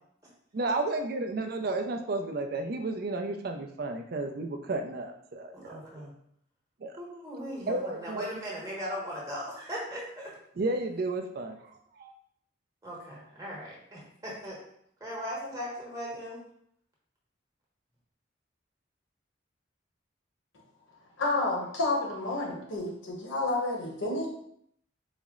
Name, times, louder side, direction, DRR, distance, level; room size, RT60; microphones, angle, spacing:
voice 1, 0.5-5.8 6.8-6.9 7.7-8.4 10.6-11.6 11.9-12.1, right 2 dB, 50° right, 5 dB, 0.4 m, -32 dB
voice 2, 5.5-6.1 7.0-10.3 12.8-14.6 15.0-16.4, equal, 15° right, -5 dB, 1.0 m, -38 dB
voice 3, 21.2-24.3, left 2 dB, 80° left, -1 dB, 0.9 m, -30 dB
4.1 x 2.0 x 3.6 m, 0.70 s
head